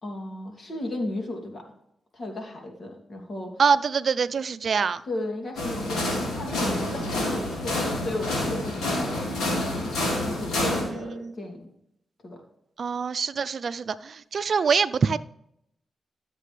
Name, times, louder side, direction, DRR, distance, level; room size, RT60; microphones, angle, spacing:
voice 1, 0.0-1.6 2.1-3.6 5.1-9.3 10.2-11.6 12.2-12.4, left 2 dB, 55° left, 1 dB, 2.8 m, -35 dB
voice 2, 3.6-5.0 11.1-11.3 12.8-15.2, right 5 dB, 65° right, 15 dB, 0.5 m, -24 dB
sound 1, 5.6-10.8, left 1 dB, 85° left, 4.0 m, -28 dB
13.0 x 7.6 x 3.3 m, 0.78 s
cardioid pair, 55°, 0 cm